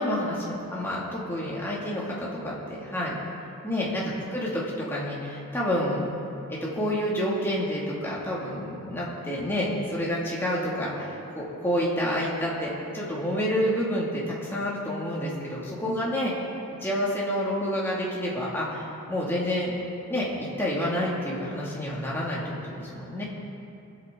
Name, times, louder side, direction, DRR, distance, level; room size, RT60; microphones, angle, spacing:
voice 1, 0.0-3.2 3.6-6.0 6.5-16.3 16.8-19.7 20.1-23.2, equal, 10° left, -6 dB, 2.5 m, -29 dB
23.5 x 8.6 x 3.9 m, 2.7 s
head